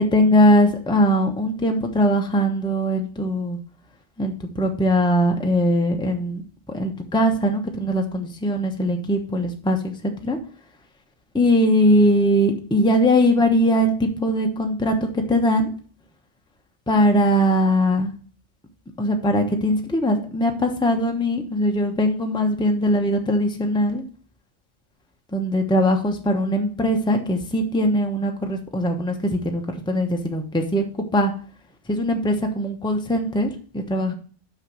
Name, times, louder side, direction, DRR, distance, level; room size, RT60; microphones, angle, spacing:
voice 1, 0.1-3.6 4.2-6.4 6.7-10.4 11.3-15.7 16.9-18.1 19.0-24.0 25.3-30.8 31.1-31.3 31.9-34.1, equal, 5° left, 3 dB, 1.0 m, -21 dB
6.5 x 5.7 x 6.4 m, 0.42 s
omnidirectional pair, 1.2 m